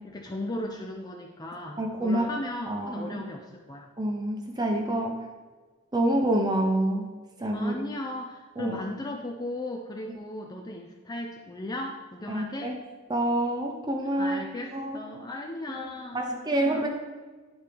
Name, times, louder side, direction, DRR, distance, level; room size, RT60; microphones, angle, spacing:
voice 1, 0.0-3.9 7.5-12.8 14.2-16.9, left 1 dB, 20° left, 1 dB, 0.4 m, -37 dB
voice 2, 1.8-2.3 2.7-3.3 4.0-5.2 5.9-7.1 7.4-7.7 8.6-8.8 12.3-12.8 13.1-14.4 14.7-15.0 15.7-15.9 16.1-16.9, right 1 dB, 20° right, 2 dB, 0.8 m, -27 dB
10.0 x 4.4 x 3.4 m, 1.3 s
head